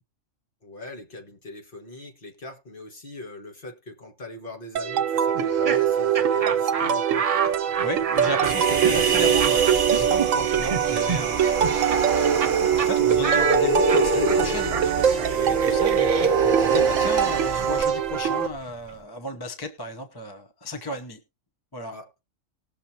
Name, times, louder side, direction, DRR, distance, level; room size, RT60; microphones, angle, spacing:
voice 1, 0.6-7.5 21.9-22.1, left 2 dB, 45° left, 1.8 m, -41 dB
sound 1, 4.8-18.5, right 8 dB, 75° right, 1.1 m, -23 dB
Laughter, 5.3-12.5 12.8-12.9 13.2-18.9, right 6 dB, 60° right, 0.4 m, -30 dB
voice 2, 7.8-11.9 12.7-21.2 21.7-22.0, equal, 20° left, 0.8 m, -34 dB
Human voice, 8.4-17.8, right 3 dB, 40° right, 1.2 m, -27 dB
19.5 x 6.6 x 2.9 m
omnidirectional pair, 1.4 m